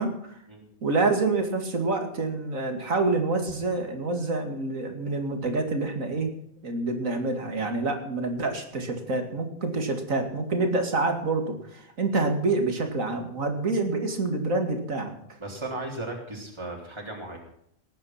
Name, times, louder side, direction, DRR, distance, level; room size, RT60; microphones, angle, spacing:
voice 1, 0.0-0.4 0.8-6.3 6.6-15.2, right 3 dB, 75° right, 5 dB, 2.8 m, -27 dB
voice 2, 15.4-17.4, right 2 dB, 20° right, -1 dB, 3.5 m, -36 dB
18.5 x 9.4 x 5.8 m, 0.70 s
omnidirectional pair, 1.4 m